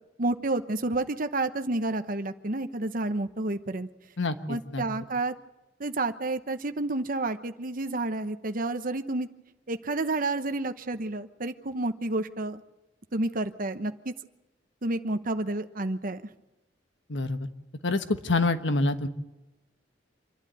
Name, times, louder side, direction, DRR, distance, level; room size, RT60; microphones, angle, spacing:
voice 1, 0.2-3.9 4.5-5.3 5.8-9.3 9.7-12.6 13.1-14.1 14.8-16.2, right 2 dB, 50° right, 9 dB, 1.0 m, -30 dB
voice 2, 4.2-4.8 17.1-17.5 17.8-19.1, left 2 dB, 85° left, 9 dB, 1.3 m, -27 dB
26.5 x 11.5 x 8.9 m, 1.0 s
head